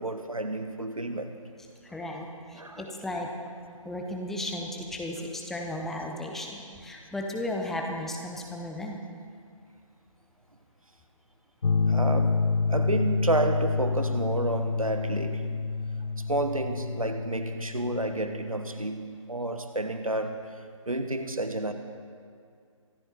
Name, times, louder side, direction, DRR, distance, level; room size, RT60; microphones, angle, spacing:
voice 1, 0.0-1.4 2.5-3.2 11.9-15.6 16.2-21.7, right 2 dB, 85° right, 8 dB, 1.4 m, -31 dB
voice 2, 1.8-3.3 3.8-9.0, left 1 dB, ahead, 0 dB, 0.7 m, -35 dB
sound 1, 11.6-18.9, left 4 dB, 75° left, 0.5 m, -28 dB
25.0 x 10.5 x 4.2 m, 2.3 s
figure-of-eight pair, 150°, 17 cm